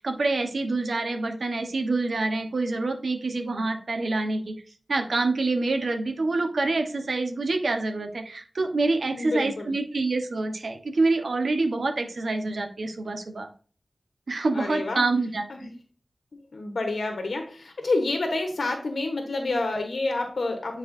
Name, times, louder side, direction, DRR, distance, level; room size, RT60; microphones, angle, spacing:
voice 1, 0.0-4.5 4.9-13.5 14.3-15.7, right 3 dB, 80° right, 5 dB, 1.1 m, -26 dB
voice 2, 9.2-9.7 14.5-15.0 15.5-15.7 16.3-20.8, left 2 dB, 85° left, 4 dB, 1.2 m, -28 dB
9.7 x 4.7 x 2.7 m, 0.40 s
wide cardioid pair, 85°, 0 cm